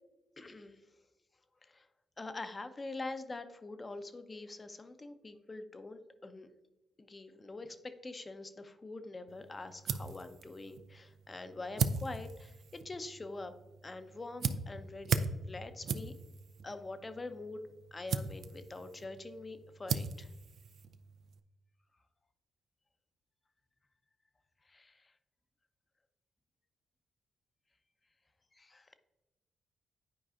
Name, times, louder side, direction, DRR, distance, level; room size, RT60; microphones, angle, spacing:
voice 1, 0.4-0.8 1.6-1.9 2.2-6.5 7.0-13.5 13.8-16.1 16.6-17.6 17.9-20.3 24.6-25.1 28.5-28.9, left 2 dB, 35° left, 9 dB, 0.7 m, -45 dB
sound 1, 9.3-21.4, right 5 dB, 65° right, 0.4 m, -39 dB
9.9 x 4.8 x 2.5 m, 1.1 s
hypercardioid pair, 40°, 0 cm